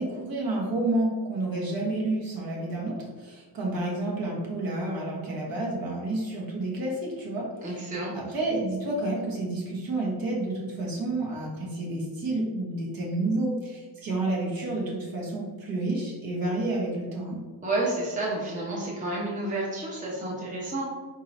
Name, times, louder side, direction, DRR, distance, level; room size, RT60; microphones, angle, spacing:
voice 1, 0.0-7.8 8.1-17.4, right 2 dB, 45° right, -3 dB, 1.2 m, -30 dB
voice 2, 7.6-8.1 17.6-20.8, right 2 dB, 15° right, -5 dB, 0.9 m, -30 dB
4.3 x 3.7 x 2.7 m, 1.4 s
cardioid pair, 130°, 47 cm